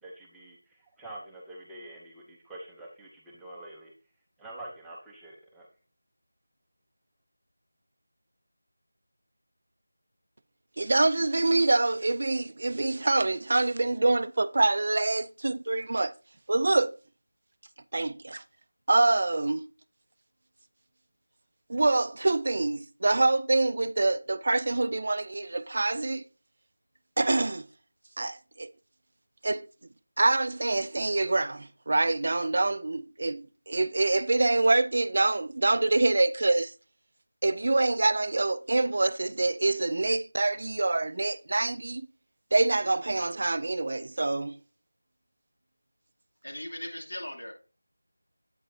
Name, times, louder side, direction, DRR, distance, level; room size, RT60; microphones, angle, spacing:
voice 1, 0.0-3.9 4.4-5.7, right 1 dB, 5° right, 0.7 m, -46 dB
voice 2, 10.8-16.1 16.5-17.0 17.9-18.4 18.9-19.6 21.7-26.2 27.2-27.7 28.2-28.7 29.4-29.7 30.2-36.7 37.4-42.1 42.5-44.6, right 2 dB, 45° right, 0.3 m, -25 dB
voice 3, 46.4-47.5, left 1 dB, 80° left, 2.5 m, -38 dB
8.4 x 5.4 x 2.7 m
figure-of-eight pair, 175°, 0 cm